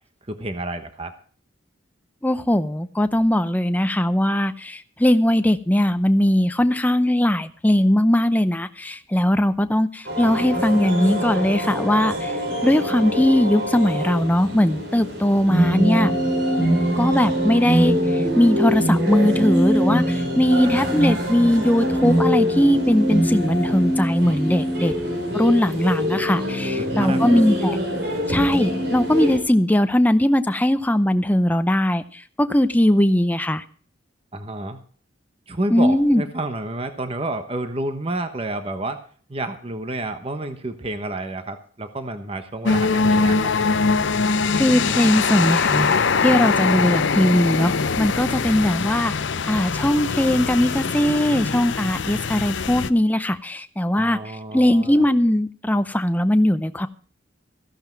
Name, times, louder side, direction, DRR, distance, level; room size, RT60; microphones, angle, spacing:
voice 1, 0.3-1.1 20.8-20.9 26.8-27.4 34.3-34.8 35.5-39.0 39.3-43.8 53.9-55.1, right 2 dB, 30° right, 8 dB, 1.1 m, -30 dB
voice 2, 2.2-16.1 17.0-24.9 25.3-27.8 28.3-33.6 35.7-36.2 44.6-49.1 49.5-54.2 54.5-56.9, left 1 dB, 10° left, 10 dB, 0.6 m, -20 dB
sound 1, 10.0-29.4, equal, 60° right, 4.1 m, -23 dB
sound 2, 42.6-52.9, left 4 dB, 65° left, 0.6 m, -22 dB
14.5 x 11.5 x 4.6 m, 0.43 s
head